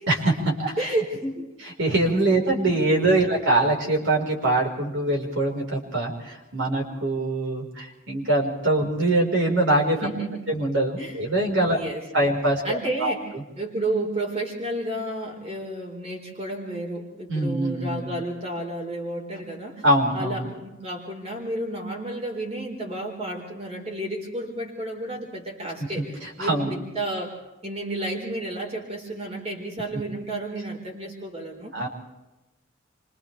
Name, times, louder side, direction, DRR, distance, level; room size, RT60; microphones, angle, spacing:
voice 1, 0.1-0.9 1.8-10.1 10.5-11.8 12.1-13.1 17.3-18.1 19.8-20.5 26.0-26.7 31.7-31.9, right 2 dB, 65° right, 0 dB, 4.9 m, -23 dB
voice 2, 0.8-1.5 2.3-2.4 10.0-10.4 11.0-11.2 11.7-12.3 12.6-13.3 13.6-19.8 20.1-27.4 27.6-31.8, right 1 dB, 30° right, 0 dB, 4.6 m, -31 dB
29.5 x 25.5 x 3.5 m, 1.0 s
head